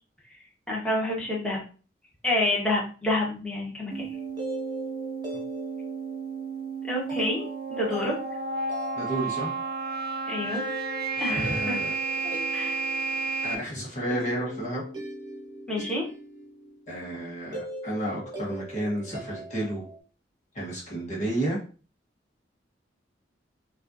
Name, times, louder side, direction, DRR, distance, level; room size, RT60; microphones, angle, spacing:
voice 1, 0.7-1.6 2.2-4.1 6.8-8.1 10.3-10.6 11.2-11.8 12.5-12.8 15.7-16.1, left 1 dB, 5° left, -4 dB, 1.2 m, -28 dB
sound 1, 3.9-13.5, right 4 dB, 55° right, 0.5 m, -32 dB
sound 2, 4.1-20.0, equal, 25° right, 1.0 m, -41 dB
voice 2, 8.9-9.5 11.3-11.9 13.4-14.8 16.9-19.8 20.5-21.6, right 1 dB, 40° left, -4 dB, 1.2 m, -31 dB
5.5 x 2.4 x 2.6 m, 0.37 s
head